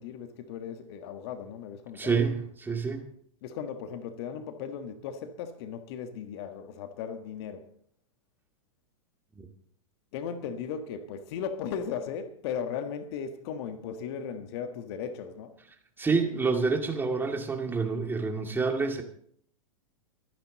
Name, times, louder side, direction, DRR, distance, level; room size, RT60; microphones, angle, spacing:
voice 1, 0.0-2.2 3.4-7.7 10.1-15.6, left 7 dB, 50° left, 1.5 m, -37 dB
voice 2, 2.0-3.1 9.4-9.5 16.0-19.0, right 4 dB, 10° right, 2.2 m, -28 dB
23.5 x 10.0 x 4.0 m
figure-of-eight pair, 100°, 18 cm